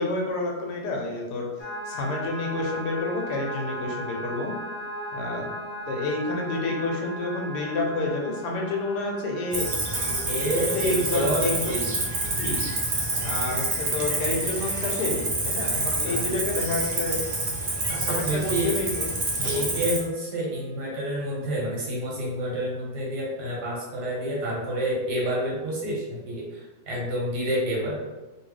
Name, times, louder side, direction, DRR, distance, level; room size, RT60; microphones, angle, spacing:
voice 1, 0.0-1.5 1.9-4.6 5.1-5.5 5.9-9.7 10.4-11.7 12.3-12.6 13.2-17.2 18.0-19.7, left 2 dB, 85° left, 0 dB, 1.3 m, -29 dB
sound 1, 1.6-20.3 20.7-21.5, equal, 65° left, 1.0 m, -39 dB
Cricket, 9.5-20.0, right 2 dB, 50° right, 0.6 m, -28 dB
voice 2, 10.2-11.9 13.1-13.3 16.0-16.3 17.9-18.7 19.4-28.0, right 1 dB, 90° right, -4 dB, 1.6 m, -29 dB
3.1 x 2.7 x 3.1 m, 1.2 s
omnidirectional pair, 1.7 m